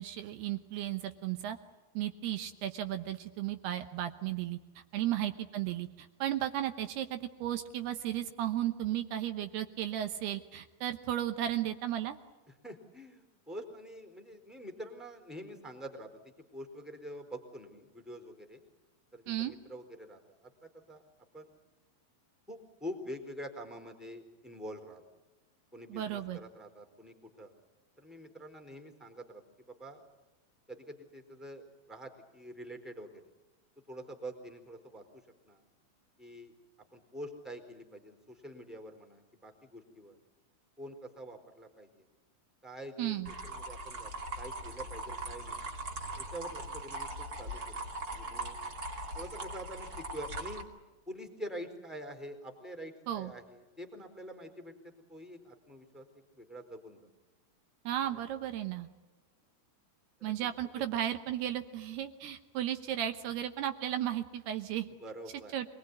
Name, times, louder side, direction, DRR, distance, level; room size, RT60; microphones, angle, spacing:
voice 1, 0.0-1.6 1.9-12.2 19.3-19.5 25.9-26.4 43.0-43.3 53.1-53.3 57.8-58.9 60.2-64.9 65.5-65.7, right 12 dB, 70° right, 9 dB, 2.6 m, -34 dB
voice 2, 12.6-16.1 16.5-18.6 19.1-20.5 20.9-21.0 21.3-21.5 22.5-25.0 25.7-27.5 28.0-30.0 30.7-33.2 33.9-35.6 36.2-36.5 36.9-40.2 40.8-42.1 42.6-44.1 44.4-45.6 46.2-47.8 48.1-48.6 49.1-50.6 51.1-56.0 56.3-57.1 65.0-65.5, equal, ahead, 3 dB, 3.2 m, -46 dB
sound 1, 43.2-50.6, right 2 dB, 30° right, 1.8 m, -40 dB
27.5 x 21.0 x 9.6 m, 1.2 s
omnidirectional pair, 5.7 m